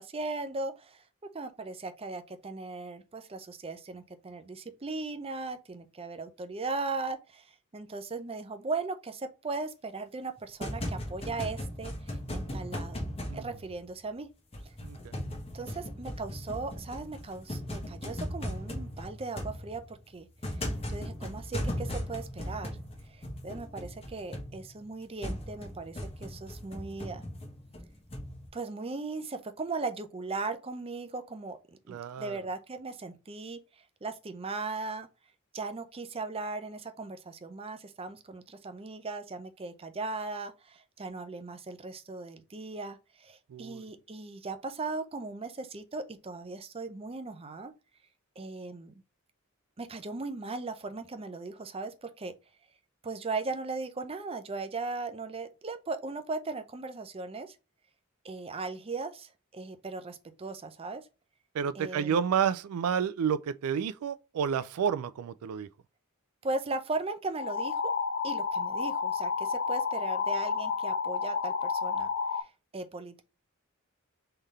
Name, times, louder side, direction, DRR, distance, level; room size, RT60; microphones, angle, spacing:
voice 1, 0.0-13.0 13.3-14.3 14.6-14.7 15.5-20.3 20.5-20.6 20.9-22.8 23.1-27.2 28.5-35.1 35.5-47.7 48.4-48.9 49.8-52.3 53.0-57.6 58.2-61.1 61.7-62.3 66.4-67.9 68.2-73.2, right 3 dB, 25° right, 0.5 m, -38 dB
sound 1, 10.4-14.2 14.5-28.5, left 1 dB, 30° left, 1.1 m, -38 dB
voice 2, 14.8-15.1 31.9-32.4 43.5-43.9 61.5-65.7, right 7 dB, 85° right, 0.3 m, -30 dB
sound 2, 67.4-72.4, left 5 dB, 50° left, 0.4 m, -31 dB
3.8 x 3.3 x 4.0 m
head